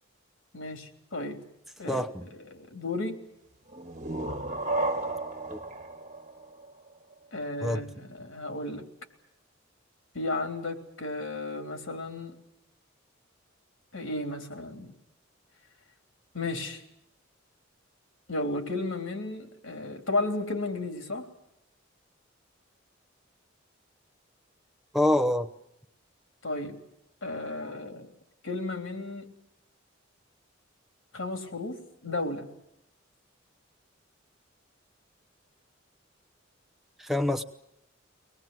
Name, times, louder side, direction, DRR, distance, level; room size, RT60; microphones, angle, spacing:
voice 1, 0.5-1.4 1.8-2.0 2.5-3.2 7.3-8.8 10.1-12.4 13.9-14.9 16.3-16.8 18.3-21.3 26.4-26.8 27.2-28.1 28.4-29.3 31.1-32.5, left 2 dB, 75° left, 5 dB, 3.4 m, -33 dB
voice 2, 1.9-2.2 5.5-5.6 7.6-7.8 24.9-25.5 37.0-37.4, left 1 dB, ahead, 5 dB, 0.8 m, -26 dB
sound 1, 3.7-7.3, right 2 dB, 35° right, 1.6 m, -33 dB
24.5 x 19.0 x 9.3 m, 0.83 s
head